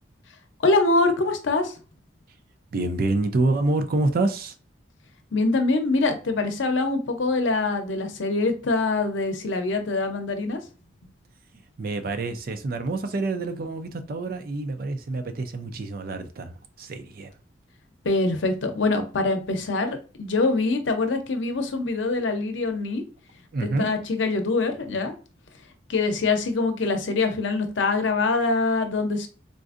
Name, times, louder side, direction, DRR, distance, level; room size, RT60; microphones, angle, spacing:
voice 1, 0.6-1.7 5.3-10.6 18.0-23.0 23.6-25.1 25.9-29.3, left 3 dB, 80° left, 0.6 m, -24 dB
voice 2, 2.7-4.5 11.8-17.3 23.5-23.9, right 2 dB, 50° right, 0.4 m, -27 dB
3.8 x 2.5 x 2.4 m
head